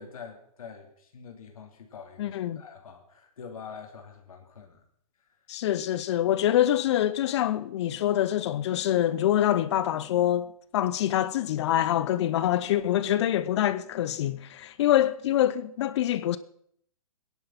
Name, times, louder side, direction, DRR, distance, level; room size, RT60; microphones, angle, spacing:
voice 1, 0.0-4.8 5.3-5.4, left 6 dB, 75° left, 2.8 m, -45 dB
voice 2, 2.2-2.6 5.5-10.5 10.7-16.4, left 12 dB, 50° left, 0.7 m, -25 dB
19.0 x 11.0 x 5.8 m
hypercardioid pair, 140°, 18 cm